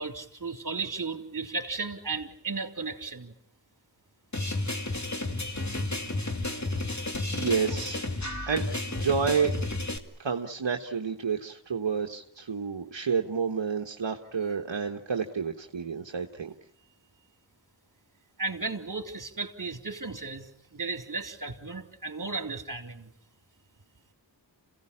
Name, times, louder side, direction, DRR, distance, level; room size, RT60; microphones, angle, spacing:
voice 1, 0.0-3.3 18.4-23.1, right 4 dB, 45° right, 5 dB, 3.4 m, -35 dB
sound 1, 4.3-10.0, left 2 dB, 40° left, 2.6 m, -32 dB
voice 2, 7.3-8.0 8.5-9.6 10.2-16.5, right 6 dB, 75° right, 2 dB, 1.4 m, -30 dB
27.5 x 17.0 x 9.9 m, 0.71 s
wide cardioid pair, 45°, 44 cm